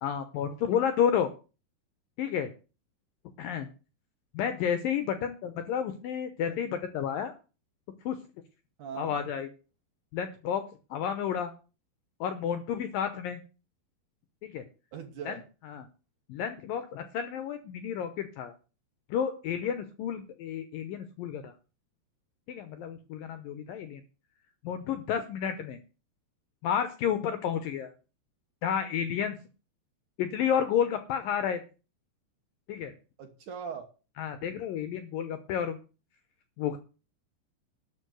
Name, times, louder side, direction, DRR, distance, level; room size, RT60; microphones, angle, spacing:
voice 1, 0.0-1.3 2.2-2.5 3.4-3.7 4.3-7.3 8.1-8.2 9.0-9.5 10.1-10.6 10.9-11.5 12.2-13.4 14.4-14.6 15.3-15.4 15.7-15.9 16.3-18.5 19.1-21.5 22.5-24.0 24.6-25.8 26.6-27.9 28.6-29.4 30.2-31.6 32.7-32.9 34.2-35.8 36.6-36.8, left 8 dB, 80° left, 9 dB, 2.1 m, -31 dB
voice 2, 8.8-9.2 14.9-15.5 33.2-33.9, right 7 dB, 65° right, 5 dB, 2.2 m, -40 dB
12.5 x 5.4 x 8.1 m, 0.34 s
omnidirectional pair, 5.0 m